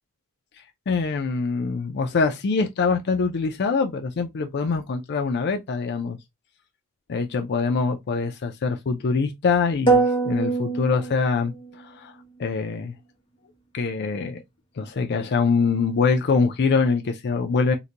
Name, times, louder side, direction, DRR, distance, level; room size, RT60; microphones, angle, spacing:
voice 1, 0.9-6.2 7.1-12.1 12.4-12.9 13.7-14.4 14.8-17.8, left 4 dB, 50° left, 0.4 m, -24 dB
sound 1, 9.9-11.8, right 4 dB, 25° left, 0.9 m, -23 dB
3.8 x 2.2 x 2.8 m
head